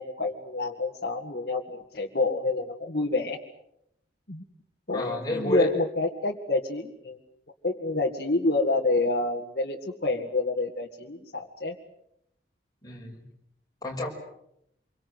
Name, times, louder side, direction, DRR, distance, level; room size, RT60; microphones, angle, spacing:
voice 1, 0.0-3.4 4.3-4.4 4.9-7.2 7.6-11.8, left 2 dB, 55° left, -1 dB, 2.1 m, -28 dB
voice 2, 4.9-5.7 12.8-13.2 13.8-14.1, left 1 dB, 20° left, 0 dB, 6.0 m, -29 dB
27.0 x 24.0 x 7.9 m, 0.77 s
head